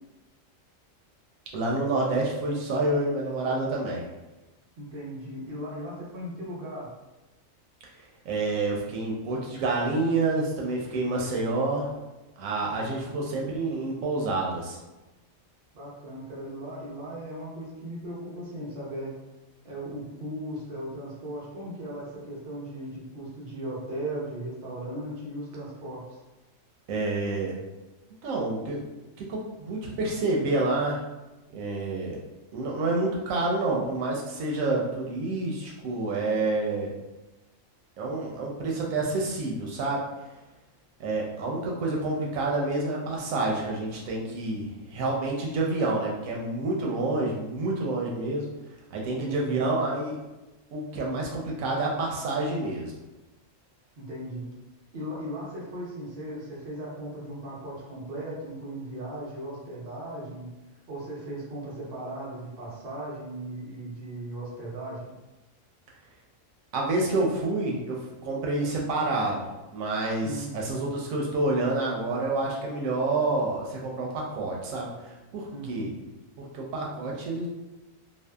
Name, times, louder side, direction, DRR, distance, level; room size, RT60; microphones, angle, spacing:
voice 1, 1.5-4.1 8.0-11.9 12.4-14.8 26.9-27.5 28.2-28.9 29.2-31.0 31.5-32.2 32.5-36.9 38.0-40.0 41.0-48.5 48.9-50.2 50.7-52.9 66.7-75.9 76.4-77.5, right 2 dB, 90° right, -2 dB, 1.0 m, -28 dB
voice 2, 4.8-6.9 13.0-13.3 15.7-19.1 19.6-26.0 49.2-49.6 54.0-54.5 54.9-60.5 60.9-65.1 70.2-70.5 75.5-75.9, right 1 dB, 50° right, -5 dB, 0.9 m, -37 dB
2.6 x 2.3 x 2.2 m, 1.1 s
omnidirectional pair, 1.4 m